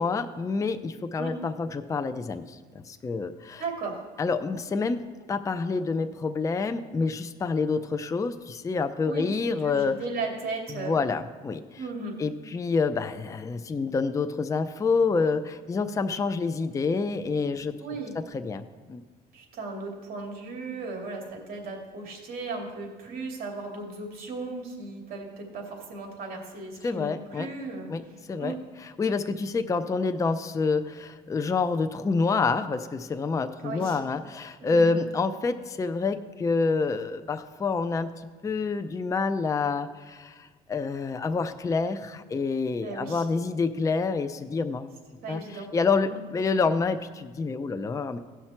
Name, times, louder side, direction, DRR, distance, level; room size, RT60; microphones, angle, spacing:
voice 1, 0.0-3.6 4.2-10.0 10.8-11.8 12.2-17.8 18.1-19.0 26.8-27.5 27.9-28.5 28.8-44.9 45.3-48.2, left 4 dB, 20° left, 9 dB, 0.4 m, -28 dB
voice 2, 3.6-4.0 9.1-9.3 9.6-11.0 11.8-12.1 17.8-18.1 19.3-27.9 28.4-28.6 33.6-34.0 34.6-35.0 42.8-43.3 45.2-45.7 46.0-46.2, right 3 dB, 60° right, 1 dB, 2.7 m, -36 dB
16.5 x 5.8 x 4.4 m, 1.5 s
cardioid pair, 110°, 17 cm